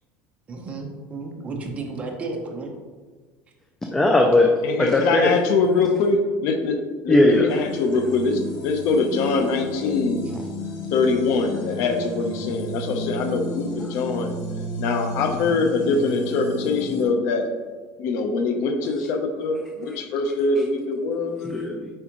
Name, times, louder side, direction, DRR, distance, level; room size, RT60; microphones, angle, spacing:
voice 1, 0.5-2.7, right 3 dB, 25° right, 2 dB, 0.9 m, -32 dB
voice 2, 3.9-4.5 4.8-5.3 7.1-7.5 21.4-21.9, left 2 dB, 10° left, 1 dB, 0.5 m, -18 dB
voice 3, 4.6-6.8 7.0-10.2 10.9-14.3 14.8-17.5 18.0-21.4, left 4 dB, 60° left, 5 dB, 0.8 m, -23 dB
sound 1, 7.5-17.0, left 1 dB, 75° left, 1.5 m, -32 dB
8.0 x 4.8 x 3.1 m, 1.4 s
cardioid pair, 155°, 5 cm